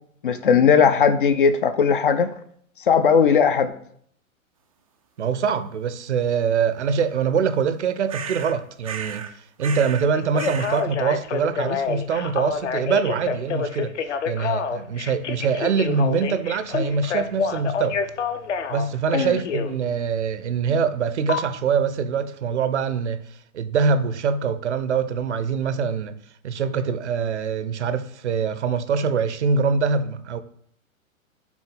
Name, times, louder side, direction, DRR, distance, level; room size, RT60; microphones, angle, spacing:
voice 1, 0.2-2.3 2.9-3.7 19.1-19.3, left 6 dB, 40° left, 0.5 m, -18 dB
voice 2, 5.2-9.2 9.6-18.0 18.7-23.2 23.5-26.1 26.4-30.4, right 6 dB, 55° right, 0.7 m, -24 dB
sound 1, 8.1-8.6 8.8-9.3 9.6-10.1 10.4-10.9, right 7 dB, 30° right, 0.4 m, -34 dB
Telephone, 10.1-19.7 21.3-21.4, left 6 dB, 55° left, 0.9 m, -27 dB
6.1 x 4.3 x 5.8 m
figure-of-eight pair, 110°, 42 cm